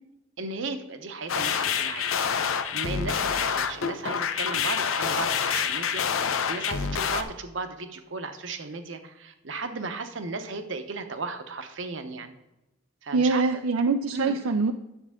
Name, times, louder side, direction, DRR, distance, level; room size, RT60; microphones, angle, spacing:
voice 1, 0.4-2.1 2.4-12.3 13.0-13.5 14.1-14.4, right 3 dB, 65° right, 8 dB, 0.9 m, -35 dB
sound 1, 1.3-7.2, left 7 dB, 80° left, 0.6 m, -27 dB
voice 2, 13.1-14.7, right 4 dB, 85° right, 6 dB, 0.5 m, -24 dB
9.9 x 7.3 x 3.6 m, 0.94 s
head